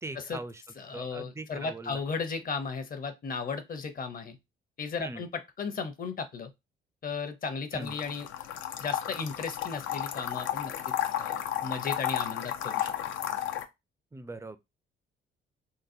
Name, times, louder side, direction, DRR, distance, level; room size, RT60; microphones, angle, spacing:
voice 1, 0.0-0.6 0.9-2.0 5.0-5.3 7.7-7.9 14.1-14.6, right 2 dB, 15° right, 0.4 m, -40 dB
voice 2, 0.8-4.4 4.8-6.5 7.0-8.3 8.8-12.9, left 5 dB, 45° left, 0.7 m, -35 dB
sound 1, 7.8-13.7, left 11 dB, 85° left, 0.5 m, -33 dB
3.9 x 2.3 x 2.6 m
cardioid pair, 90°, 20 cm